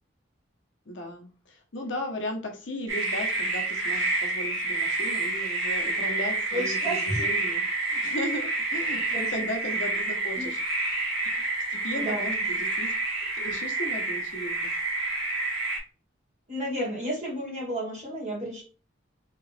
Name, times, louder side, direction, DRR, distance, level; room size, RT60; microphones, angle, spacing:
voice 1, 0.9-10.6 11.7-12.9 13.3-14.7, left 1 dB, 65° left, 3 dB, 0.8 m, -36 dB
sound 1, 2.9-15.8, right 3 dB, 80° right, 1.5 m, -29 dB
voice 2, 6.5-7.3 9.1-9.5 10.4-10.5 12.0-12.6 16.5-18.6, right 1 dB, 35° right, -4 dB, 1.8 m, -32 dB
3.3 x 2.9 x 3.2 m, 0.36 s
head